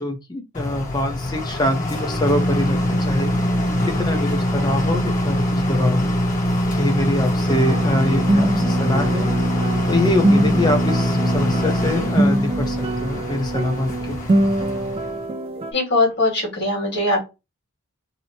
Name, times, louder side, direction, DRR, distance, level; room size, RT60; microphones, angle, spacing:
voice 1, 0.0-3.3 3.9-6.1 6.8-9.3 9.9-12.8 13.0-14.2, left 1 dB, 20° left, 0.7 m, -24 dB
sound 1, 0.5-15.2, left 1 dB, 35° left, 0.9 m, -23 dB
sound 2, 7.5-15.7, right 1 dB, 25° right, 0.3 m, -23 dB
voice 2, 15.5-17.2, left 2 dB, 50° left, 1.5 m, -21 dB
2.8 x 2.1 x 4.1 m
head